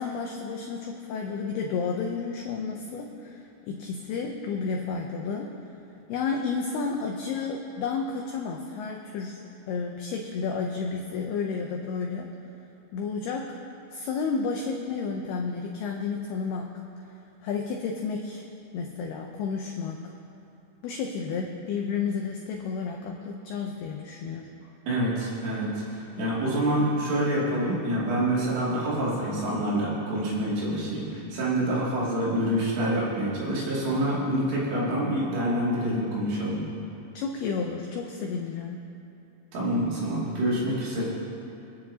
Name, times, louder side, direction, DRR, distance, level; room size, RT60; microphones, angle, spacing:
voice 1, 0.0-5.5 6.1-12.3 12.9-13.6 13.9-16.7 17.4-18.5 18.7-20.0 20.8-24.5 37.1-38.8, left 5 dB, 85° left, 1 dB, 2.2 m, -31 dB
voice 2, 24.9-25.8 26.2-36.6 39.5-41.1, right 1 dB, 75° right, -7 dB, 5.1 m, -26 dB
26.0 x 9.5 x 2.9 m, 2.7 s
omnidirectional pair, 5.6 m